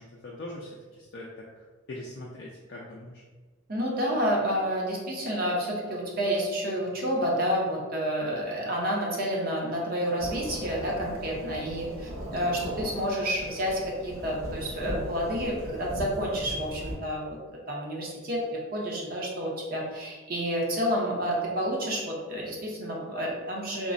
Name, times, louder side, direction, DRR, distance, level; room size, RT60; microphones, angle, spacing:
voice 1, 0.0-1.4 1.9-3.2, left 1 dB, 50° left, -4 dB, 0.3 m, -41 dB
voice 2, 3.7-17.4 17.7-23.9, equal, 45° right, -3 dB, 0.6 m, -29 dB
Thunderstorm / Rain, 10.2-17.0, equal, 85° right, 1.0 m, -38 dB
3.6 x 2.0 x 2.5 m, 1.3 s
head